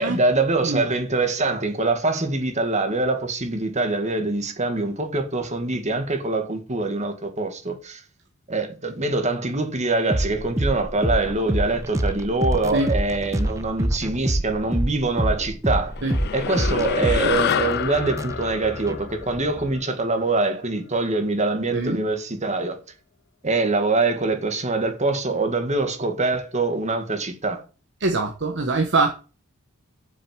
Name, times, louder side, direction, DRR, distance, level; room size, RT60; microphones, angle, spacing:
voice 1, 0.0-8.0 8.5-15.9 16.3-22.8 23.4-27.6, right 3 dB, 30° right, 2.0 m, -24 dB
sound 1, 10.1-19.7, right 1 dB, 15° right, 0.9 m, -26 dB
sound 2, 16.0-20.6, left 8 dB, 50° left, 0.4 m, -28 dB
voice 2, 21.7-22.0 28.0-29.1, right 3 dB, 55° right, 1.3 m, -23 dB
7.6 x 6.9 x 7.5 m
head